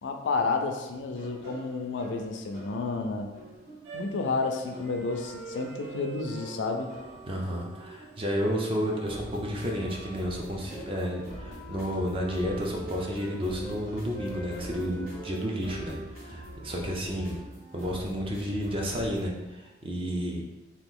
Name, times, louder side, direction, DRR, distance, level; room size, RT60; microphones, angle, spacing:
voice 1, 0.0-3.3 3.9-6.9, left 3 dB, 80° left, 5 dB, 0.4 m, -31 dB
sound 1, 0.9-19.2, right 1 dB, 50° right, 1.3 m, -45 dB
sound 2, 3.9-8.2 8.9-10.2, right 4 dB, 90° right, 0.4 m, -45 dB
voice 2, 7.3-17.4 17.7-20.4, equal, 30° right, -1 dB, 0.5 m, -31 dB
Wind instrument woodwind instrument, 10.4-13.8 14.1-18.0, right 2 dB, 70° right, 1.0 m, -45 dB
2.9 x 2.4 x 3.7 m, 1.1 s
head